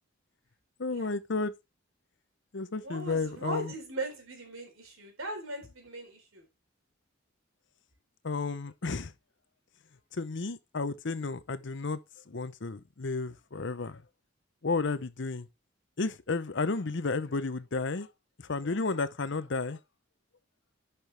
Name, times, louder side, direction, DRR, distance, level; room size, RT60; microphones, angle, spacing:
voice 1, 0.8-1.5 2.5-3.7 8.2-9.1 10.1-12.0 12.3-14.0 14.6-15.5 16.0-18.1 18.4-19.8, left 3 dB, 60° left, 0.8 m, -32 dB
voice 2, 2.8-6.4, right 2 dB, 85° right, 3.8 m, -39 dB
11.0 x 6.0 x 3.4 m
head